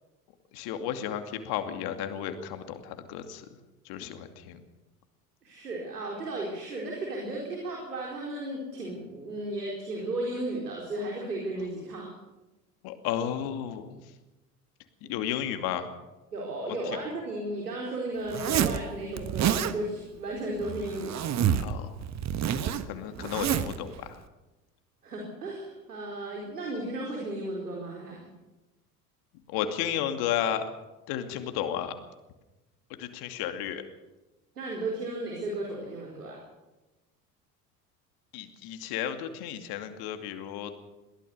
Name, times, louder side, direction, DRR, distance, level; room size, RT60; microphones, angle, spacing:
voice 1, 0.5-3.4 3.8-4.6 12.8-14.0 15.1-15.9 16.9-17.0 21.6-21.9 22.9-24.2 29.5-30.6 31.1-31.9 33.0-33.8 38.3-40.7, left 10 dB, 55° left, 7 dB, 2.6 m, -33 dB
voice 2, 5.4-12.1 16.3-21.3 25.0-28.3 34.6-36.4, right 1 dB, 80° right, -1 dB, 4.3 m, -34 dB
Zipper (clothing), 18.3-18.8 19.2-19.7 20.6-21.7 22.0-23.8, right 9 dB, 35° right, 1.4 m, -28 dB
22.0 x 17.0 x 7.0 m, 1.1 s
figure-of-eight pair, 70°, 46 cm